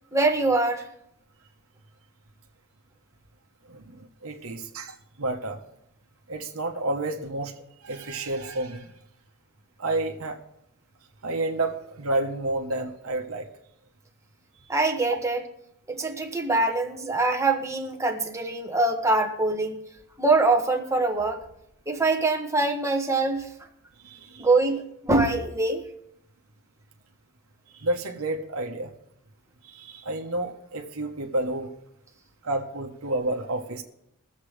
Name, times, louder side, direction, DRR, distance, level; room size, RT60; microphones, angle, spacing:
voice 1, 0.1-0.9 14.7-15.4 15.9-19.8 20.2-21.4 21.9-23.5 24.4-25.8, right 2 dB, 15° right, 3 dB, 1.3 m, -24 dB
voice 2, 3.7-5.6 6.3-7.5 7.8-8.9 9.8-10.4 11.2-13.5 24.0-24.5 27.7-28.9 29.6-31.7 32.4-33.8, right 2 dB, 70° right, 2 dB, 1.1 m, -30 dB
22.0 x 7.5 x 3.3 m, 0.79 s
head